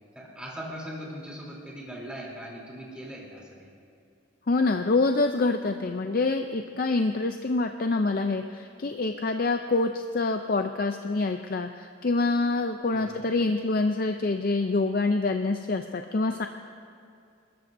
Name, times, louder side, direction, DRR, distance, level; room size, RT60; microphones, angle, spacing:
voice 1, 0.1-3.7 12.9-13.3, equal, 5° right, -4 dB, 3.3 m, -40 dB
voice 2, 4.5-16.5, left 3 dB, 50° left, 6 dB, 0.5 m, -26 dB
29.0 x 13.5 x 2.7 m, 2.5 s
head